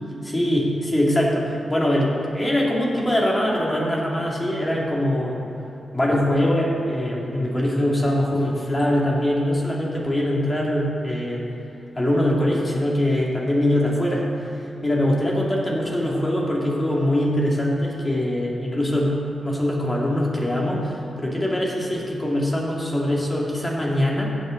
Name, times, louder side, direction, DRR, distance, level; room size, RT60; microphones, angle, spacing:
voice 1, 0.2-5.4 5.9-11.4 12.0-14.3 14.8-24.3, left 1 dB, 20° left, -3 dB, 2.3 m, -22 dB
15.5 x 7.9 x 3.9 m, 2.8 s
cardioid pair, 100°, 0 cm